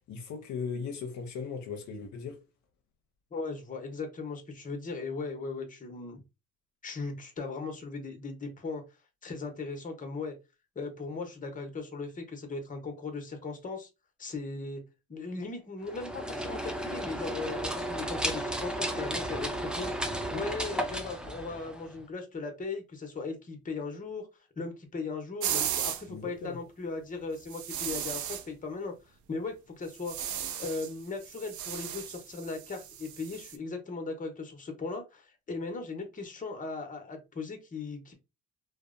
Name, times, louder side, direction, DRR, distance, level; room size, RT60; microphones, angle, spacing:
voice 1, 0.1-2.4 26.1-26.6, left 5 dB, 70° left, 0.6 m, -38 dB
voice 2, 3.3-6.2 6.8-8.8 9.2-10.3 10.8-13.9 14.2-14.8 15.1-20.0 20.3-24.3 24.6-30.2 30.6-38.1, left 3 dB, 25° left, 0.8 m, -38 dB
sound 1, 15.8-22.0, right 1 dB, 5° right, 0.3 m, -34 dB
sound 2, 25.4-26.0 27.5-28.5 29.9-30.9 31.2-33.6, right 10 dB, 70° right, 0.5 m, -35 dB
2.7 x 2.0 x 2.4 m
cardioid pair, 90°, 30 cm